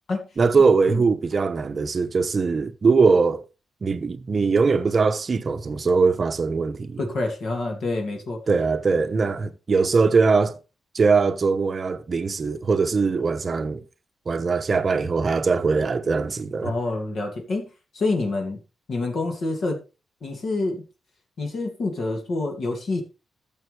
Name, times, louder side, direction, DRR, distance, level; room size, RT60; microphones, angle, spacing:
voice 1, 0.4-3.4 3.8-7.0 8.5-10.6 10.9-13.8 14.3-16.7, right 4 dB, 35° right, 0.8 m, -21 dB
voice 2, 7.0-8.4 16.6-17.7 17.9-18.6 18.9-19.8 20.2-20.8 21.4-23.0, left 2 dB, 50° left, 2.3 m, -27 dB
14.0 x 7.3 x 3.3 m
wide cardioid pair, 160°, 0 cm